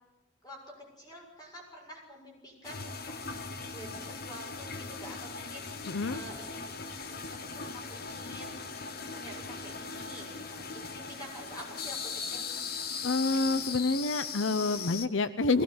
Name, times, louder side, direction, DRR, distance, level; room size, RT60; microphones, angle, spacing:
voice 1, 1.0-3.0 3.7-6.7 7.0-8.5 9.1-12.4, equal, 20° left, -1 dB, 6.7 m, -48 dB
sound 1, 2.6-15.1, left 5 dB, 55° left, 1.3 m, -39 dB
voice 2, 5.9-6.2 13.0-15.6, left 3 dB, 80° left, 13 dB, 0.8 m, -28 dB
20.0 x 17.5 x 9.8 m, 1.0 s
head